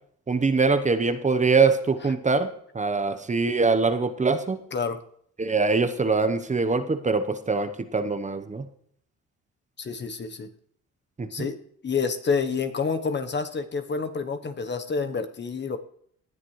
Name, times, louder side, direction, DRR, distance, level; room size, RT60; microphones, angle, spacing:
voice 1, 0.3-2.5 2.7-4.6 5.4-8.7 11.2-11.5, right 4 dB, 25° right, 9 dB, 1.0 m, -23 dB
voice 2, 4.7-5.0 9.8-10.5 11.3-15.8, left 5 dB, 35° left, 8 dB, 1.0 m, -28 dB
18.5 x 10.5 x 3.2 m, 0.65 s
cardioid pair, 90°, 30 cm